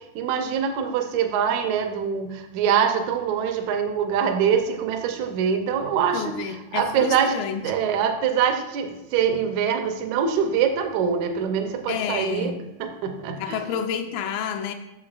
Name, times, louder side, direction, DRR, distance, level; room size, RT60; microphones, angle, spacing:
voice 1, 0.0-6.3 6.7-7.4 7.6-12.5 12.8-13.6, right 7 dB, 80° right, 2.0 m, -24 dB
voice 2, 6.1-7.6 11.9-12.6 13.4-14.7, left 7 dB, 90° left, 2.1 m, -29 dB
10.5 x 6.6 x 2.4 m
omnidirectional pair, 3.4 m